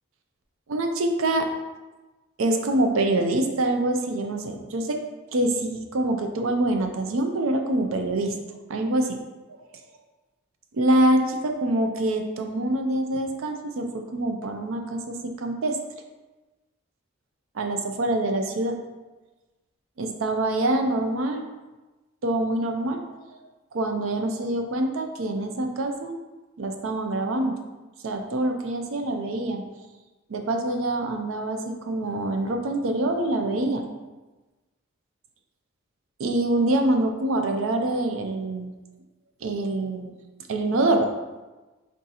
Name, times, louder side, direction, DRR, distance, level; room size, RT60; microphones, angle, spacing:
voice 1, 0.7-1.5 2.4-5.0 5.3-8.3 8.7-9.2 10.7-13.9 14.1-15.8 17.6-18.7 20.0-21.4 22.2-23.0 23.7-26.2 26.6-27.5 28.0-29.6 30.3-33.9 36.2-38.7 39.4-40.1 40.5-41.1, right 1 dB, 75° right, 5 dB, 0.5 m, -25 dB
3.6 x 2.8 x 3.9 m, 1.2 s
head